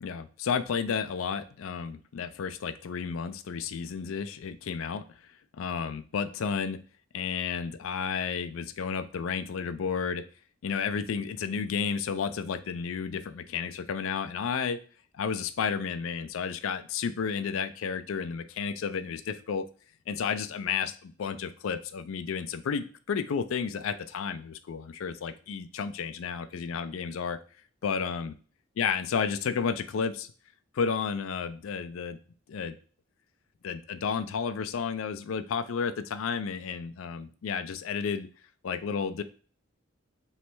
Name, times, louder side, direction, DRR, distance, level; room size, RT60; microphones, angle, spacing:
voice 1, 0.0-6.8 7.1-10.2 10.6-14.8 15.1-19.6 20.1-27.4 27.8-28.3 28.8-30.3 30.7-32.2 32.5-32.7 33.6-38.3 38.6-39.2, left 6 dB, 80° left, 11 dB, 0.4 m, -32 dB
3.2 x 3.1 x 4.5 m, 0.41 s
head